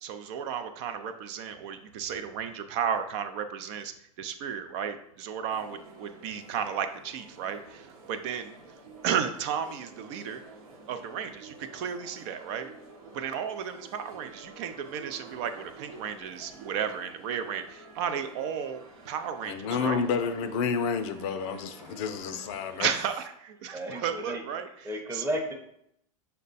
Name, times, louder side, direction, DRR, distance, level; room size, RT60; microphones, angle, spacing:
voice 1, 0.0-3.9 4.2-8.6 9.0-10.4 10.9-12.7 13.1-18.8 19.1-20.0 22.8-25.3, right 8 dB, 55° right, 8 dB, 0.4 m, -33 dB
sound 1, 5.5-22.8, right 3 dB, 80° right, 1.0 m, -50 dB
voice 2, 19.4-22.9, left 6 dB, 55° left, 9 dB, 0.5 m, -30 dB
voice 3, 23.7-24.4 24.8-25.5, equal, 15° right, 3 dB, 0.8 m, -33 dB
5.4 x 2.2 x 4.0 m, 0.74 s
hypercardioid pair, 110°, 18 cm